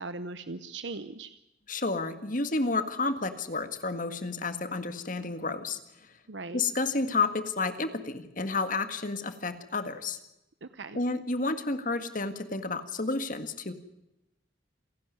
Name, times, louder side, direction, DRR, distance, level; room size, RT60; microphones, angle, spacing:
voice 1, 0.0-1.3 6.3-6.6 10.6-11.0, right 3 dB, 80° right, 12 dB, 0.9 m, -39 dB
voice 2, 1.7-5.8 6.5-10.2 10.9-13.7, left 3 dB, 45° left, 10 dB, 1.8 m, -31 dB
28.0 x 11.5 x 9.5 m, 0.90 s
head